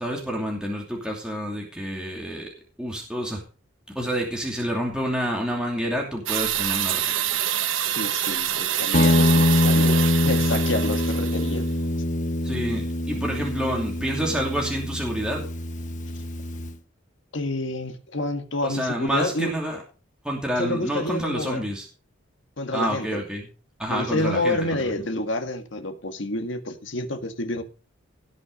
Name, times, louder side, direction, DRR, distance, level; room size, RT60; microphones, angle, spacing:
voice 1, 0.0-2.5 2.8-3.4 3.9-7.4 12.4-15.5 18.6-19.8 20.2-21.9 22.7-23.5 23.8-24.9, equal, 5° right, 2.7 m, -28 dB
sound 1, 6.3-11.7, right 11 dB, 75° right, 1.1 m, -27 dB
voice 2, 7.9-11.7 17.3-19.5 20.6-21.7 22.6-23.2 23.9-27.6, left 2 dB, 65° left, 1.8 m, -28 dB
Guitar, 8.9-16.8, left 1 dB, 40° left, 1.0 m, -24 dB
18.0 x 6.2 x 5.2 m
head